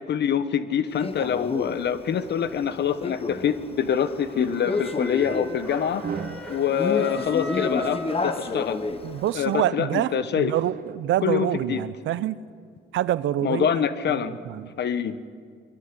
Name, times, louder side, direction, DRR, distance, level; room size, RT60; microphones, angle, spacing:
voice 1, 0.0-6.0 6.5-8.8 9.3-10.5 11.2-11.8 13.4-14.3 14.8-15.1, left 8 dB, 60° left, 13 dB, 1.1 m, -25 dB
Male speech man speaking, 1.0-9.5, left 3 dB, 30° left, 1.3 m, -31 dB
sound 1, 4.1-8.9, equal, 5° left, 7.7 m, -37 dB
sound 2, 6.0-6.5 7.6-8.1 8.9-9.9 10.6-11.0, right 6 dB, 45° right, 1.1 m, -38 dB
voice 2, 9.0-12.4 12.9-13.7 14.2-14.7, right 12 dB, 75° right, 17 dB, 0.7 m, -26 dB
22.5 x 13.0 x 9.8 m, 2.2 s
cardioid pair, 90°, 20 cm